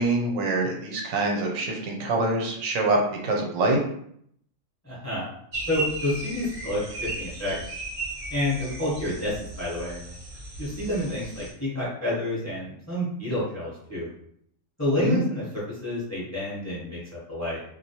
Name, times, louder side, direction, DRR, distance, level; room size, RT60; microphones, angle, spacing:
voice 1, 0.0-3.8 15.0-15.2, right 2 dB, 85° right, 0 dB, 1.0 m, -25 dB
voice 2, 4.8-5.3 5.7-6.8 7.2-7.6 8.3-10.0 10.6-14.1 14.8-17.0 17.3-17.6, left 1 dB, 15° left, -8 dB, 0.7 m, -29 dB
sound 1, 5.5-11.5, right 2 dB, 50° right, 0.6 m, -36 dB
2.2 x 2.0 x 2.7 m, 0.68 s
omnidirectional pair, 1.4 m